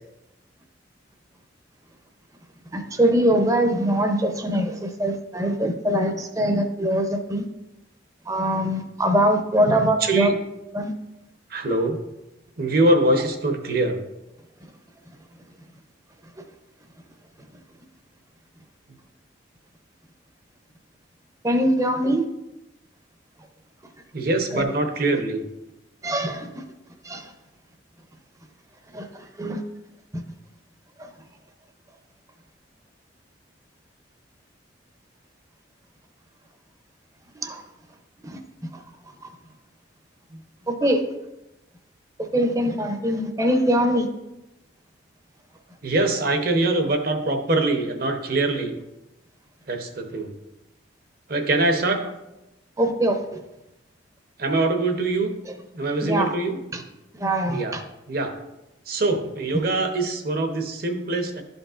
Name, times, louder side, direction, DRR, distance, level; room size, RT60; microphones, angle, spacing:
voice 1, 2.7-7.4 8.3-10.3 10.7-10.9 21.4-22.2 24.5-24.7 26.0-26.6 27.0-27.3 28.9-29.1 29.4-29.6 30.1-30.2 31.0-31.1 37.4-37.6 38.2-38.4 40.7-41.0 42.2-44.1 52.8-53.2 56.0-56.3 57.1-57.8, right 1 dB, 15° right, 6 dB, 0.6 m, -22 dB
voice 2, 9.6-10.3 11.5-12.0 12.6-14.0 24.1-25.4 45.8-48.8 49.7-50.3 51.3-52.1 54.4-55.3 55.7-56.6 57.5-57.8 58.1-58.4 58.9-61.4, right 2 dB, 50° right, 5 dB, 0.8 m, -23 dB
11.5 x 5.3 x 2.5 m, 0.96 s
head